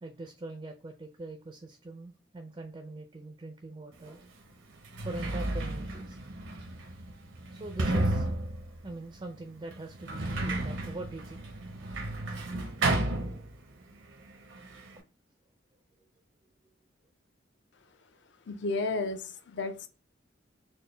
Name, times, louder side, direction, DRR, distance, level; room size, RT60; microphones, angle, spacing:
voice 1, 0.0-4.2 5.0-6.2 7.5-8.3 8.8-11.6, right 2 dB, 25° right, 4 dB, 0.4 m, -43 dB
Sliding door, 4.0-4.1 4.7-13.9 14.2-15.0, right 2 dB, 75° right, 0.7 m, -33 dB
voice 2, 18.5-19.9, left 3 dB, 65° left, 8 dB, 0.5 m, -32 dB
4.3 x 2.1 x 3.2 m, 0.35 s
head